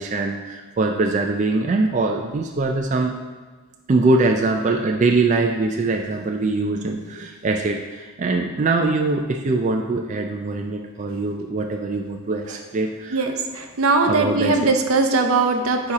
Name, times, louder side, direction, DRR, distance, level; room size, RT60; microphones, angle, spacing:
voice 1, 0.0-3.2 3.9-13.2 14.0-14.7, right 3 dB, 35° right, 3 dB, 0.3 m, -22 dB
voice 2, 13.1-15.9, right 3 dB, 75° right, 5 dB, 0.6 m, -20 dB
8.5 x 2.9 x 4.8 m, 1.4 s
head